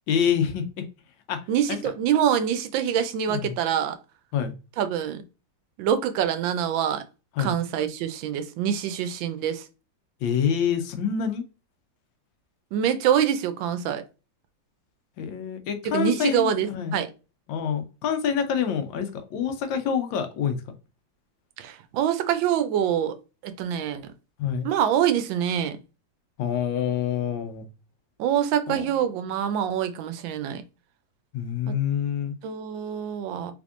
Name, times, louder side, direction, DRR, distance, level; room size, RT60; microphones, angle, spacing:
voice 1, 0.1-0.6 1.3-1.4 1.7-1.8 3.3-3.5 4.3-4.5 7.4-7.6 10.2-11.4 15.2-17.0 17.5-20.6 24.4-24.7 26.4-27.6 28.7-28.9 31.3-32.3, left 8 dB, 90° left, 1.4 m, -26 dB
voice 2, 1.5-4.0 4.8-5.2 5.8-7.0 7.4-9.7 12.7-14.0 15.9-17.1 21.6-23.2 23.4-24.1 24.6-25.8 28.2-30.6 31.7-31.8 32.4-33.5, right 9 dB, 85° right, 1.3 m, -25 dB
3.5 x 3.4 x 2.5 m
omnidirectional pair, 2.1 m